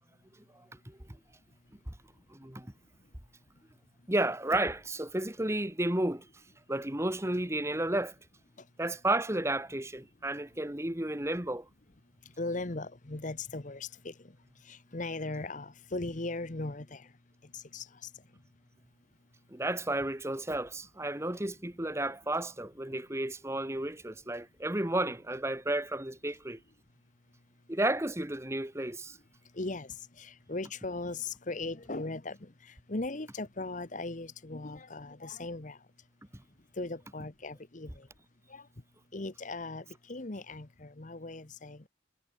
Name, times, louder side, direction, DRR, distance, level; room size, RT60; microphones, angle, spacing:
voice 1, 0.5-1.0 1.9-2.0 2.3-2.7 4.1-6.3 6.7-8.1 8.8-11.7 19.5-26.6 27.7-29.2, right 1 dB, 15° right, 1.5 m, -32 dB
voice 2, 12.4-14.1 14.6-17.1 17.5-17.9 29.5-35.8 36.8-38.1 38.5-38.7 39.1-41.9, left 2 dB, 40° left, 1.1 m, -38 dB
head